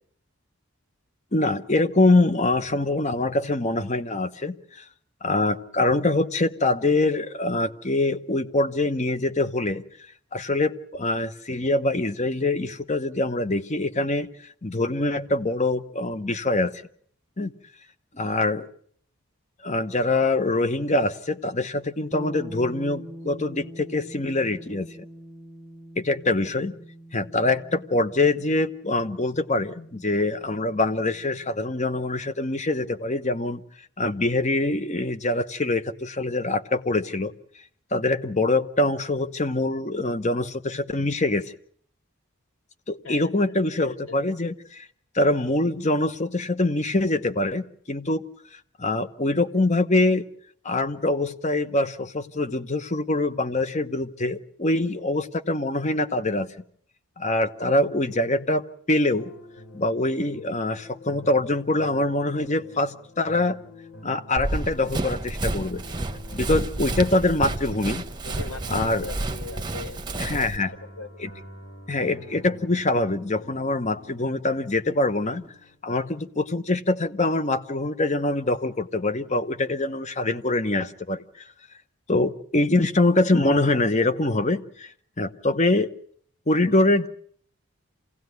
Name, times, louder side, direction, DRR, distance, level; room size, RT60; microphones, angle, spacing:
voice 1, 1.3-4.8 5.2-9.8 10.3-14.3 14.6-16.7 17.4-17.5 18.1-18.7 19.6-24.9 26.0-26.7 27.1-33.6 34.0-37.3 37.9-41.5 42.9-44.9 45.1-48.2 48.5-50.3 50.6-56.5 57.2-59.3 59.7-63.6 64.0-65.8 66.3-68.0 68.7-69.1 70.2-70.7 71.2-71.3 71.9-75.4 75.8-81.2 82.1-85.9 86.5-87.1, left 2 dB, 30° left, 11 dB, 1.0 m, -24 dB
sound 1, 22.1-31.9, equal, ahead, 1.1 m, -44 dB
voice 2, 43.0-43.5 44.1-44.2 68.2-70.5 71.0-71.1, left 3 dB, 85° left, 4 dB, 4.4 m, -39 dB
sound 2, 59.1-75.8, equal, 55° left, 4.2 m, -47 dB
Run, 64.4-70.6, right 2 dB, 20° right, 1.0 m, -30 dB
27.5 x 17.5 x 9.5 m, 0.63 s
head